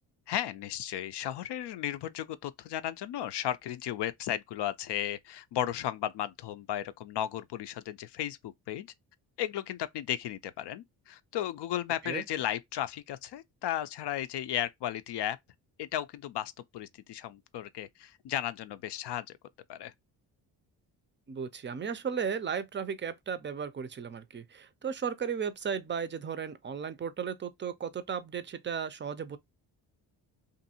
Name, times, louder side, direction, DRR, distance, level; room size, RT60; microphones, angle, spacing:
voice 1, 0.3-8.9 9.4-15.4 15.8-19.3 19.7-19.9, left 11 dB, 60° left, 0.5 m, -35 dB
voice 2, 21.3-29.4, right 7 dB, 25° right, 0.5 m, -35 dB
2.6 x 2.6 x 2.7 m
supercardioid pair, 60°, 46 cm